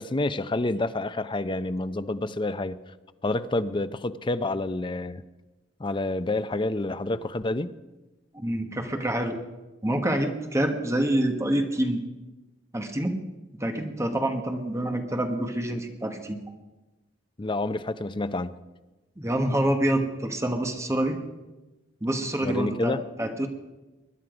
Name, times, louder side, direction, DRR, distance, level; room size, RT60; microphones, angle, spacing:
voice 1, 0.0-2.8 3.2-5.2 5.8-7.7 17.4-18.5 22.4-23.0, left 2 dB, 25° left, 13 dB, 0.6 m, -28 dB
voice 2, 8.3-9.4 9.8-12.0 12.7-13.2 13.6-16.4 19.2-21.2 22.0-23.5, right 1 dB, 15° right, 5 dB, 1.3 m, -27 dB
21.0 x 11.0 x 5.1 m, 1.1 s
head